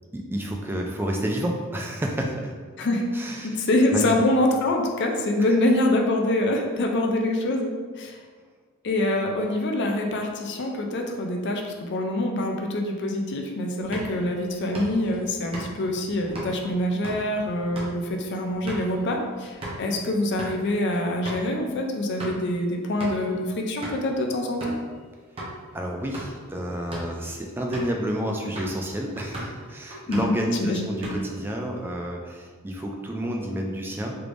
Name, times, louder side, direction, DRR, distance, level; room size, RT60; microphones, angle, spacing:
voice 1, 0.1-2.5 3.1-3.5 3.9-4.2 25.7-34.2, equal, 10° right, 1 dB, 0.3 m, -30 dB
voice 2, 3.4-8.2 8.8-24.7 30.1-30.3 30.6-30.9, left 1 dB, 55° left, 2 dB, 0.4 m, -25 dB
sound 1, 13.8-19.9 20.2-20.6 20.9-21.0 21.2-21.5 21.9-22.5 23.0-23.3 23.8-24.1 24.6-24.9 25.4-25.5 26.0-26.4 26.8-27.2 27.7-28.0 28.6-28.8 29.2-29.6 29.9-30.4 30.8-31.4, right 1 dB, 25° right, 0.7 m, -37 dB
3.4 x 3.1 x 2.5 m, 1.5 s
head